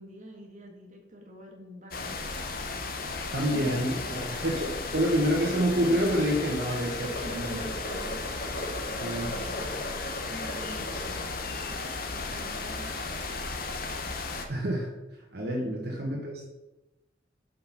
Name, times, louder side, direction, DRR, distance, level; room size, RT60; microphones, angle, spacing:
voice 1, 0.0-3.1 3.5-4.4 4.7-5.0 6.7-9.9 10.3-11.8 12.1-13.6 15.6-16.1, equal, 40° right, -1 dB, 1.6 m, -46 dB
sound 1, 1.9-14.5, left 3 dB, 50° left, 0.8 m, -35 dB
voice 2, 3.3-7.6 9.0-9.3 14.5-14.9 15.3-16.4, equal, 60° right, -2 dB, 1.2 m, -28 dB
sound 2, 3.7-3.8 4.2-4.3 4.6-4.7 4.9-5.5 5.9-6.6 7.0-11.2, left 1 dB, 65° left, 2.2 m, -38 dB
6.0 x 5.3 x 5.7 m, 1.0 s
head